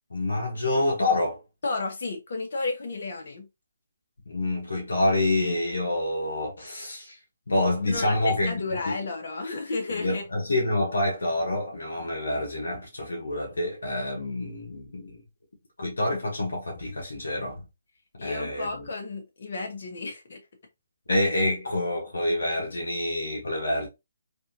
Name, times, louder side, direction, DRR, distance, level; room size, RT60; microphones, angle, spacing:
voice 1, 0.1-1.4 4.3-7.2 7.5-8.6 8.9-9.0 9.9-15.2 15.8-17.6 18.2-18.9 21.1-23.9, left 1 dB, 80° left, 1.3 m, -27 dB
voice 2, 1.6-3.5 7.9-10.2 18.2-20.4, left 3 dB, 60° left, 1.5 m, -32 dB
3.4 x 2.7 x 2.7 m
figure-of-eight pair, 150°, 0 cm